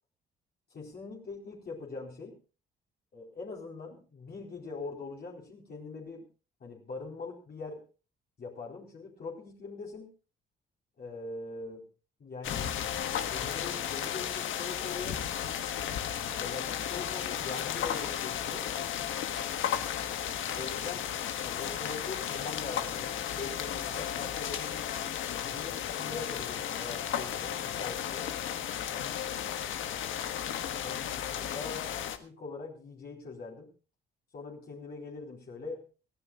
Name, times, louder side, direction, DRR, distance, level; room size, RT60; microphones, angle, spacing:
voice 1, 0.7-2.3 3.1-6.2 6.6-7.8 8.4-10.1 11.0-11.8 12.2-12.8 13.2-15.2 16.4-18.7 20.5-24.8 25.3-28.3 30.8-33.7 34.3-35.8, left 3 dB, 50° left, -2 dB, 4.2 m, -42 dB
sound 1, 12.4-32.2, left 9 dB, 80° left, 1.4 m, -34 dB
23.0 x 15.0 x 2.4 m, 0.34 s
cardioid pair, 90°, 20 cm